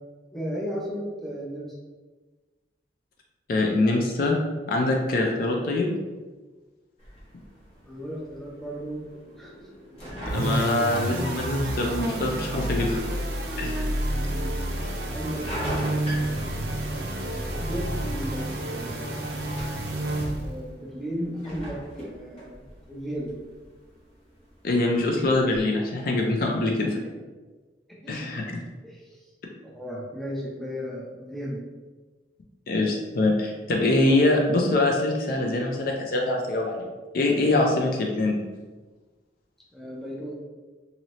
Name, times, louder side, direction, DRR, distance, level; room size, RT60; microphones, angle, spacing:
voice 1, 0.3-1.7 7.8-9.0 9.4-9.7 14.1-16.5 16.8-19.8 20.4-22.6 22.9-23.4 27.9-28.6 28.8-29.2 29.7-31.7 39.7-40.4, equal, ahead, -5 dB, 0.5 m, -36 dB
voice 2, 3.5-4.4 4.7-5.9 10.3-13.0 13.6-13.9 24.6-27.0 28.1-28.5 32.7-36.9 37.1-38.4, left 2 dB, 50° left, 0 dB, 0.4 m, -24 dB
sound 1, 7.0-25.6, equal, 35° left, 0.8 m, -43 dB
sound 2, 8.6-20.3, equal, 85° left, 1.2 m, -40 dB
sound 3, 10.2-20.6, right 1 dB, 60° right, 0.5 m, -29 dB
2.7 x 2.6 x 3.0 m, 1.3 s
head